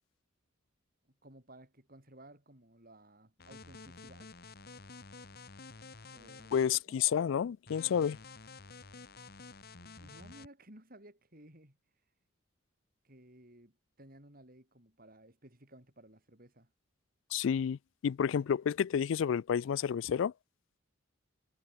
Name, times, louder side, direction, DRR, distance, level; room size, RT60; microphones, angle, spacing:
voice 1, 1.0-4.3 6.1-7.0 9.7-11.8 13.0-16.7, right 1 dB, 45° right, 5.5 m, -57 dB
sound 1, 3.4-6.8 7.7-10.5, left 4 dB, 45° left, 1.4 m, -51 dB
voice 2, 6.5-8.2 17.3-20.3, left 8 dB, 65° left, 0.3 m, -30 dB
head